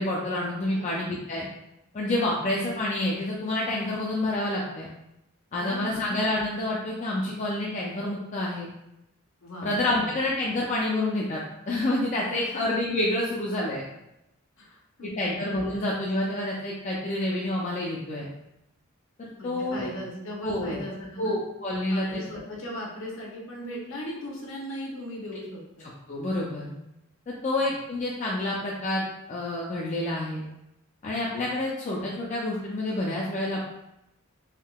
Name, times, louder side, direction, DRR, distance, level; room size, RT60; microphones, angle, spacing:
voice 1, 0.0-1.5 1.9-4.9 5.5-8.7 9.6-11.4 11.7-13.8 15.0-18.2 19.2-19.9 20.4-20.8 21.2-22.2 26.1-26.7 27.3-30.4 31.0-33.6, left 1 dB, 35° left, -4 dB, 0.4 m, -28 dB
voice 2, 5.6-6.0 9.4-10.1 12.4-12.6 14.6-15.3 15.7-15.8 19.3-21.4 21.9-25.9 27.6-27.8, equal, 60° left, -2 dB, 0.8 m, -38 dB
3.5 x 2.7 x 2.2 m, 0.86 s
head